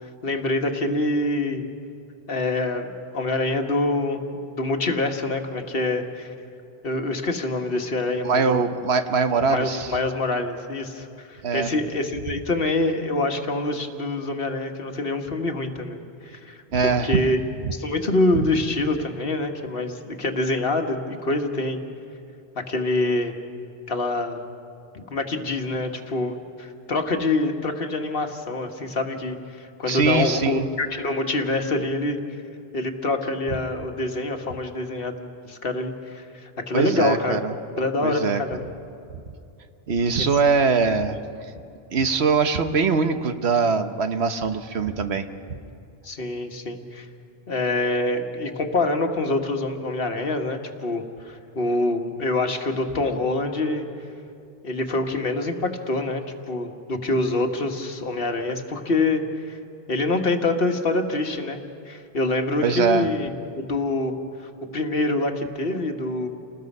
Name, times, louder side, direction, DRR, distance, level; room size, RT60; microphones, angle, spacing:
voice 1, 0.2-1.6 2.3-6.3 6.8-8.7 9.5-16.6 17.0-17.4 17.7-21.8 22.5-23.3 23.9-24.4 24.9-32.2 32.7-37.4 37.8-38.7 40.2-40.3 46.0-47.1 47.5-53.9 54.6-59.6 59.9-64.2 64.7-66.3, left 2 dB, 60° left, 5 dB, 1.6 m, -26 dB
voice 2, 8.2-9.9 11.4-11.7 16.7-17.2 17.6-17.7 18.3-18.5 29.9-30.7 36.7-37.5 38.0-38.4 39.9-41.2 41.9-45.3 62.6-63.1, right 5 dB, 80° right, 8 dB, 1.2 m, -22 dB
29.0 x 19.5 x 5.4 m, 2.6 s
omnidirectional pair, 1.1 m